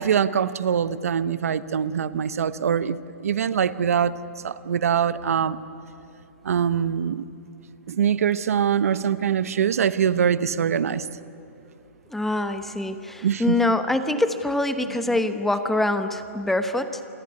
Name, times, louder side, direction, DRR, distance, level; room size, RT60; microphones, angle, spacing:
voice 1, 0.0-4.1 4.4-5.6 6.4-7.3 7.9-11.1 13.2-13.6, right 8 dB, 75° right, 15 dB, 1.0 m, -23 dB
voice 2, 12.1-17.0, left 2 dB, 5° left, 9 dB, 1.1 m, -24 dB
27.5 x 20.0 x 9.8 m, 2.8 s
hypercardioid pair, 145°, 8 cm